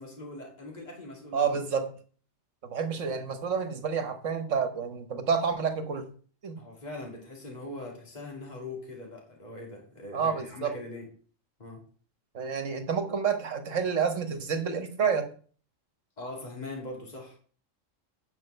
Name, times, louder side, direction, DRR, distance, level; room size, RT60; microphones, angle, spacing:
voice 1, 0.0-1.6 6.6-11.1 11.6-11.8 16.2-17.4, left 2 dB, 35° left, -1 dB, 2.6 m, -41 dB
voice 2, 1.3-1.9 2.6-6.1 6.4-6.6 10.1-10.7 12.3-15.3, right 6 dB, 70° right, 8 dB, 1.6 m, -29 dB
9.3 x 5.2 x 6.6 m, 0.43 s
omnidirectional pair, 1.3 m